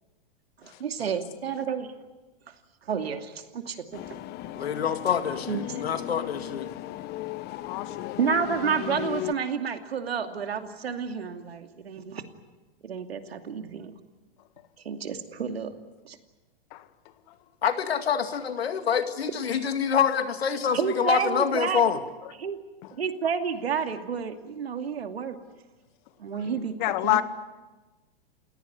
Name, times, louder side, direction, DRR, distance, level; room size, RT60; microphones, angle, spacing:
voice 1, 0.6-1.9 2.9-4.2 5.5-5.8 8.2-12.2 12.8-13.9 14.8-15.7 16.0-16.2 20.7-21.9 22.4-22.6 22.9-25.4 26.2-27.2, right 6 dB, 90° right, 6 dB, 2.7 m, -30 dB
sound 1, 3.9-9.3, left 14 dB, 35° left, 1.1 m, -36 dB
voice 2, 4.5-6.7 17.6-22.0, left 7 dB, 85° left, 8 dB, 2.4 m, -26 dB
voice 3, 7.7-8.2 16.7-16.8 26.8-27.2, left 16 dB, 50° left, 11 dB, 1.9 m, -26 dB
29.0 x 17.5 x 9.6 m, 1.2 s
hypercardioid pair, 120°, 30 cm